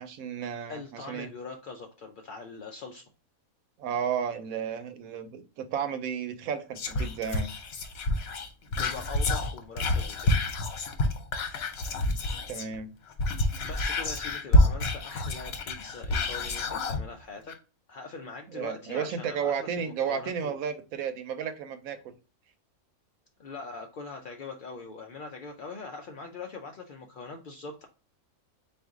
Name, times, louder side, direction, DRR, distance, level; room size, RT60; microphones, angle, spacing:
voice 1, 0.0-1.3 3.8-7.5 12.5-12.9 18.5-22.1, right 7 dB, 80° right, 10 dB, 1.0 m, -33 dB
voice 2, 0.7-3.0 8.6-10.4 13.6-17.5 17.9-20.6 23.4-27.9, left 4 dB, 85° left, 3 dB, 0.4 m, -42 dB
Whispering, 6.8-12.8 13.1-17.0 17.5-17.6, left 2 dB, 55° left, 0.8 m, -28 dB
3.9 x 2.6 x 3.6 m, 0.32 s
omnidirectional pair, 1.5 m